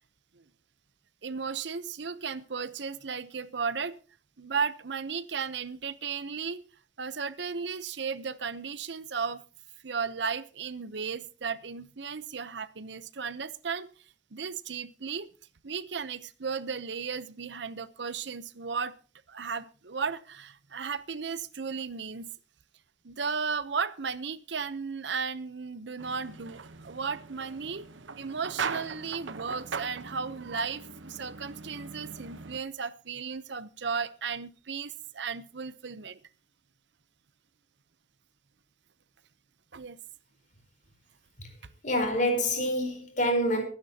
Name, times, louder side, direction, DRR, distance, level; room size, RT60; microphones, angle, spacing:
voice 1, 1.2-4.0 4.4-6.7 7.0-9.4 9.8-13.9 14.3-15.3 15.6-19.0 19.3-22.3 23.0-36.2 39.7-40.0, right 5 dB, 65° right, 0.8 m, -35 dB
sound 1, 26.0-32.6, right 5 dB, 90° right, 1.0 m, -40 dB
voice 2, 41.8-43.6, equal, 45° left, 4.5 m, -27 dB
24.0 x 10.0 x 2.9 m
head